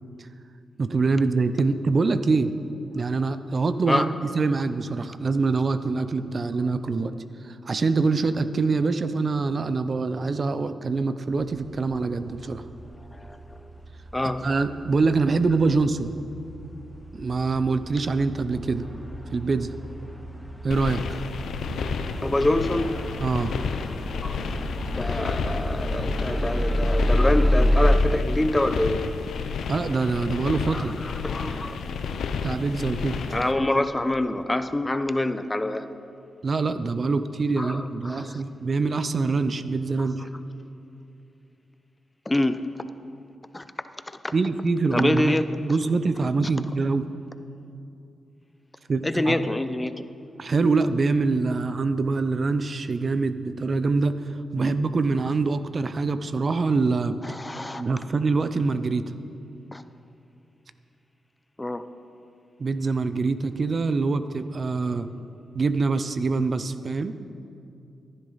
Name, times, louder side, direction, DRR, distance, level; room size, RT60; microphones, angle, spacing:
voice 1, 0.8-2.5 2.9-7.1 7.4-12.6 14.4-16.1 17.1-18.9 19.3-19.7 20.6-21.0 23.2-23.5 29.7-31.0 32.4-33.2 36.4-40.2 44.3-47.1 48.9-49.5 50.4-54.1 54.5-57.2 57.8-59.1 62.6-65.1 65.5-67.2, right 4 dB, 50° right, 12 dB, 0.6 m, -24 dB
sound 1, 11.4-28.0, equal, ahead, 1.0 m, -29 dB
voice 2, 13.1-13.6 14.1-14.5 22.2-23.0 24.2-24.4 25.0-29.0 30.7-31.8 33.3-35.8 37.6-38.4 40.0-40.3 42.3-42.6 43.5-43.7 44.2-44.3 44.9-45.4 49.0-50.1 57.2-57.8 59.7-59.8 61.6-61.8, left 1 dB, 20° left, 11 dB, 0.6 m, -26 dB
sound 2, 20.7-33.5, left 5 dB, 80° left, 0.6 m, -31 dB
14.5 x 11.5 x 4.1 m, 2.6 s
cardioid pair, 55°, 0 cm